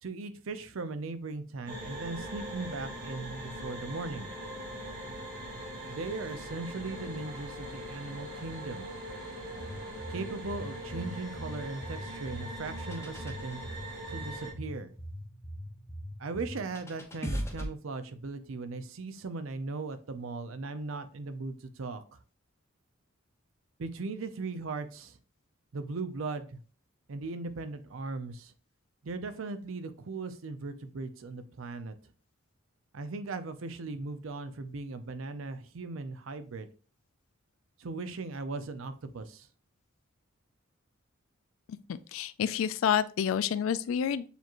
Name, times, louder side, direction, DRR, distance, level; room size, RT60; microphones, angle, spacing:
voice 1, 0.0-4.3 5.9-8.9 10.1-13.7 14.1-14.9 16.2-22.2 23.8-25.2 25.7-26.6 27.1-28.5 29.0-31.9 32.9-36.7 37.8-39.5, right 3 dB, 75° right, 0.5 m, -38 dB
sound 1, 1.7-14.5, right 1 dB, 40° right, 1.7 m, -41 dB
sound 2, 9.6-17.7, equal, 15° left, 0.7 m, -41 dB
voice 2, 41.9-44.2, left 8 dB, 75° left, 0.3 m, -29 dB
6.8 x 3.0 x 2.4 m
head